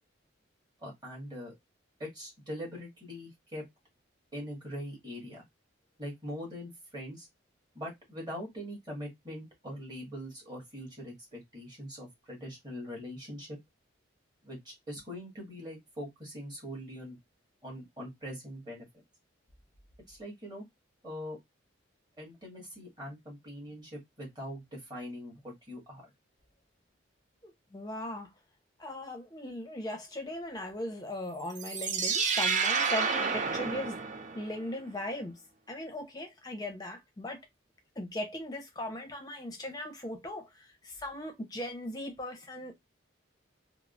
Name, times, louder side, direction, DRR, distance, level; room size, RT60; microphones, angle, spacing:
voice 1, 0.8-1.5 2.0-3.6 4.3-5.4 6.0-7.3 7.7-13.5 14.4-17.2 17.6-18.9 20.1-20.6 21.0-21.4 22.2-26.0, equal, 20° right, 1.5 m, -42 dB
voice 2, 27.4-28.3 28.8-34.0 34.3-35.3 35.7-37.4 38.0-42.7, left 1 dB, 20° left, 0.7 m, -38 dB
sound 1, 31.5-34.6, right 5 dB, 35° right, 0.3 m, -30 dB
3.5 x 2.0 x 2.4 m
head